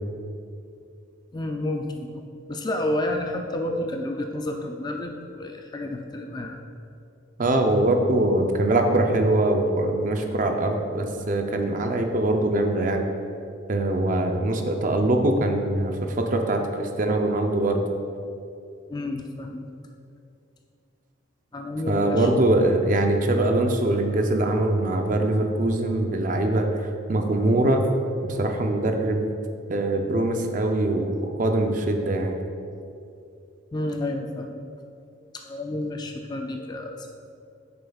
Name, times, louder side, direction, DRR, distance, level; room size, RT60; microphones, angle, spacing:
voice 1, 1.3-2.2 2.5-6.6 18.9-19.7 21.5-22.3 33.7-34.6 35.4-37.0, left 1 dB, 20° left, 3 dB, 0.3 m, -30 dB
voice 2, 7.4-13.1 13.7-17.8 21.9-26.7 27.1-27.8 28.2-29.3 29.7-32.4, right 1 dB, 40° right, 4 dB, 0.5 m, -23 dB
9.0 x 6.8 x 2.3 m, 2.5 s
head